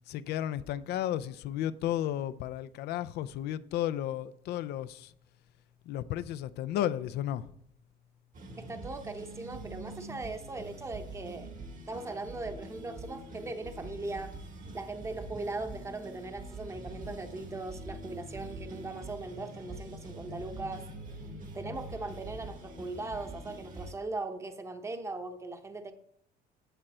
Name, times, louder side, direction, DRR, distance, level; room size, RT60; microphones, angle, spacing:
voice 1, 0.1-5.1 5.9-7.5, left 12 dB, 75° left, 0.5 m, -33 dB
sound 1, 8.3-23.9, right 2 dB, 50° right, 1.5 m, -44 dB
voice 2, 8.6-11.5 11.9-14.4 14.7-20.9 21.5-25.9, right 2 dB, 15° right, 0.9 m, -39 dB
9.0 x 7.5 x 4.3 m
cardioid pair, 110°, 17 cm